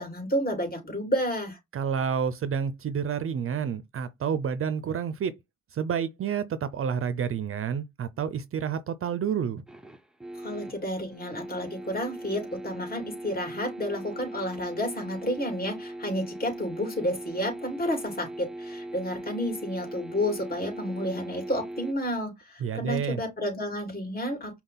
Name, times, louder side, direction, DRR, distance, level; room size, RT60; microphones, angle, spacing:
voice 1, 0.0-1.6 10.3-24.6, equal, 30° left, 2.8 m, -31 dB
voice 2, 1.7-5.4 5.7-9.6 22.6-23.2, right 7 dB, 45° right, 0.6 m, -29 dB
sound 1, 9.7-21.9, right 1 dB, ahead, 0.6 m, -39 dB
5.4 x 2.4 x 3.9 m
cardioid pair, 90°, 30 cm